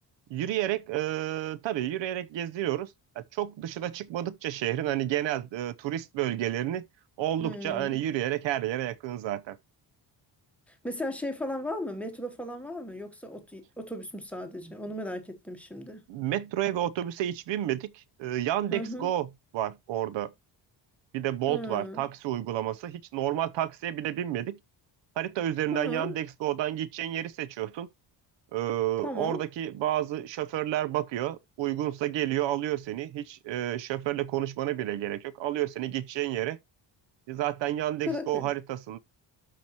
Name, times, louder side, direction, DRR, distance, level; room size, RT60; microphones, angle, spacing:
voice 1, 0.3-6.8 7.2-9.6 16.1-20.3 21.1-24.6 25.2-27.9 28.5-36.6 37.3-39.0, right 13 dB, 75° right, 0.7 m, -30 dB
voice 2, 7.4-8.0 10.7-16.0 18.7-19.1 21.5-22.0 25.7-26.1 29.0-29.4 38.1-38.5, left 1 dB, 5° left, 1.0 m, -36 dB
12.5 x 4.7 x 2.9 m
cardioid pair, 175°, 44 cm